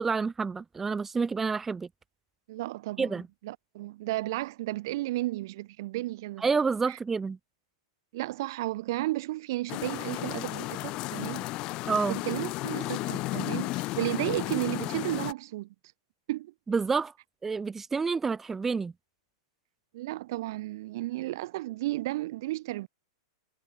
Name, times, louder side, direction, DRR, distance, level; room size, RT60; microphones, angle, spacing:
voice 1, 0.0-1.9 3.0-3.3 6.4-7.4 11.9-12.2 16.7-17.1 17.4-18.9, right 5 dB, 10° right, 0.5 m, -28 dB
voice 2, 2.5-6.5 6.9-7.0 8.1-11.5 12.1-15.7 16.3-16.5 19.9-22.9, right 17 dB, 55° right, 0.7 m, -33 dB
sound 1, 9.7-15.3, left 20 dB, 35° left, 0.7 m, -33 dB
supercardioid pair, 150°, 2 cm